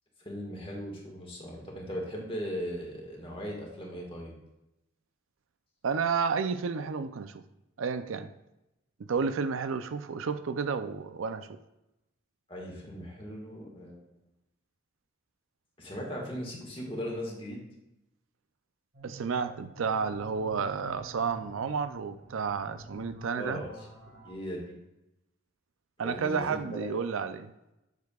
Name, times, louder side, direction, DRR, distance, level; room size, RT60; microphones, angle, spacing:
voice 1, 0.2-4.3 12.5-14.0 15.8-17.6 23.3-23.9 24.2-24.8 26.0-26.6, equal, 25° left, -1 dB, 1.6 m, -38 dB
voice 2, 5.8-7.4 7.8-8.3 9.1-11.5 19.0-23.6 26.0-27.5, right 5 dB, 75° right, 10 dB, 0.5 m, -31 dB
sound 1, 18.9-24.3, right 1 dB, 60° right, 1.8 m, -49 dB
8.3 x 6.6 x 2.3 m, 0.92 s
head